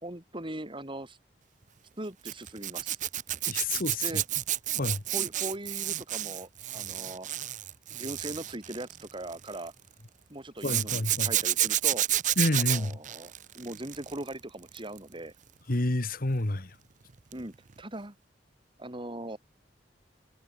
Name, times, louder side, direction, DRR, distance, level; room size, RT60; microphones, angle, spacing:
voice 1, 0.0-1.2 2.0-3.0 4.0-4.2 5.1-7.3 7.9-9.7 10.3-12.1 12.6-15.3 17.3-18.2 18.8-19.4, right 1 dB, 30° right, 3.5 m, -40 dB
Zipper (clothing), 2.2-9.7 10.6-14.3 14.6-15.0 17.3-17.5 17.7-17.8, right 13 dB, 45° right, 0.6 m, -30 dB
voice 2, 3.5-4.2 4.8-5.0 10.6-11.3 12.4-12.9 15.7-16.7, left 2 dB, 55° left, 1.5 m, -29 dB
head